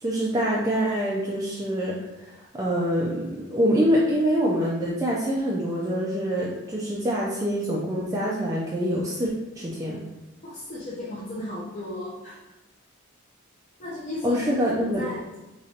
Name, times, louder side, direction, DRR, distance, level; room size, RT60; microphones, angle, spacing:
voice 1, 0.0-10.0 14.2-15.0, equal, 15° right, -5 dB, 0.4 m, -25 dB
voice 2, 10.4-12.4 13.8-14.4 14.8-15.4, left 1 dB, 35° left, -8 dB, 0.7 m, -35 dB
5.0 x 3.0 x 2.8 m, 1.0 s
head